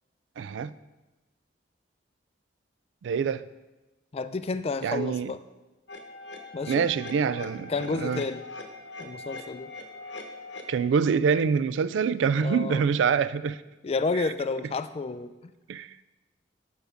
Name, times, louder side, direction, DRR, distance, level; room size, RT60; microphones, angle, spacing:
voice 1, 0.4-0.7 3.0-3.5 4.8-5.3 6.7-8.2 10.7-13.6 15.7-15.9, right 6 dB, 80° right, 0.3 m, -25 dB
voice 2, 4.1-5.4 6.5-6.9 7.7-8.4 9.0-9.7 12.4-12.9 13.8-15.5, left 3 dB, 35° left, 0.4 m, -30 dB
sound 1, 5.9-10.9, left 2 dB, 70° left, 0.9 m, -41 dB
6.9 x 6.6 x 5.0 m
head